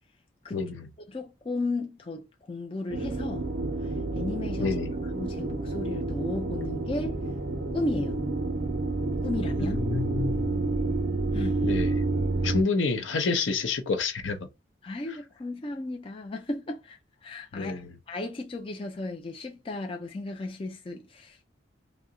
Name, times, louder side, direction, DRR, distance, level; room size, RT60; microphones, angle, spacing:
voice 1, 0.5-0.8 4.6-4.9 9.6-10.7 11.6-11.9 12.4-14.5 17.5-17.8, left 4 dB, 75° left, 0.6 m, -28 dB
voice 2, 1.1-3.5 3.8-4.8 5.0-7.2 7.7-8.2 9.2-9.8 11.3-11.7 14.8-21.4, left 2 dB, 30° left, 0.4 m, -35 dB
sound 1, 2.9-12.6, right 2 dB, 45° right, 0.5 m, -29 dB
2.7 x 2.1 x 3.6 m
head